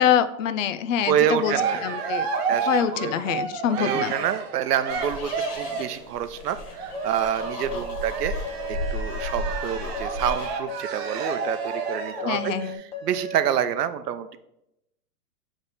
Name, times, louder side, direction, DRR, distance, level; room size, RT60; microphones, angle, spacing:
voice 1, 0.0-2.3 2.7-4.1 12.2-12.8, left 9 dB, 55° left, 13 dB, 0.5 m, -25 dB
Cheering, 1.0-6.0 6.8-12.3, right 5 dB, 40° right, 0.8 m, -31 dB
voice 2, 1.1-2.1 2.5-2.7 2.9-3.1 3.8-8.4 8.7-12.5 13.0-14.4, right 9 dB, 85° right, 11 dB, 0.7 m, -27 dB
sound 1, 4.9-10.5, left 2 dB, 75° left, 1.8 m, -34 dB
sound 2, 6.9-13.5, right 2 dB, 15° left, 0.8 m, -36 dB
7.0 x 3.5 x 4.0 m, 0.83 s
hypercardioid pair, 140°, 46 cm